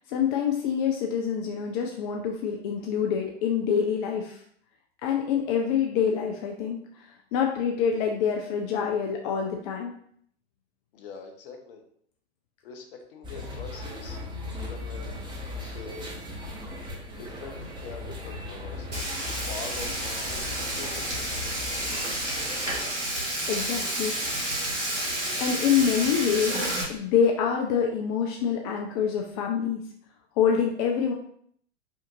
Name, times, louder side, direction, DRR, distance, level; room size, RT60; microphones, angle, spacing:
voice 1, 0.0-4.4 5.0-9.9 23.5-24.1 25.4-26.6 26.9-29.8 30.4-31.1, left 7 dB, 35° left, 1 dB, 0.5 m, -26 dB
voice 2, 10.9-11.8 12.6-14.2 14.5-15.3 15.6-16.1 17.1-18.9 19.2-21.4, left 5 dB, 50° left, 4 dB, 0.8 m, -43 dB
sound 1, 13.2-22.9, left 2 dB, 15° right, 0.9 m, -38 dB
Frying (food), 18.9-26.8, right 1 dB, 85° right, 1.2 m, -30 dB
5.1 x 2.5 x 2.6 m, 0.63 s
figure-of-eight pair, 95°, 34 cm